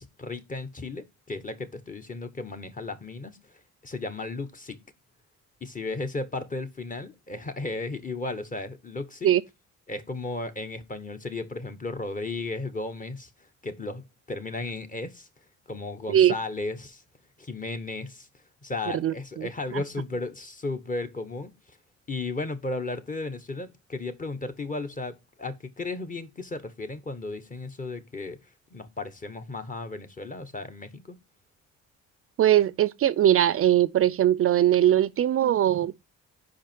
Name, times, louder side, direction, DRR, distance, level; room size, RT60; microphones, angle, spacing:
voice 1, 0.0-4.8 5.6-9.3 9.9-13.3 13.6-15.3 15.7-17.0 17.4-18.3 18.6-21.8 22.1-28.4 28.7-31.2, left 3 dB, 25° left, 1.1 m, -35 dB
voice 2, 19.0-19.8 32.4-35.9, right 11 dB, 50° right, 0.4 m, -21 dB
5.2 x 5.0 x 4.5 m
cardioid pair, 90°, 30 cm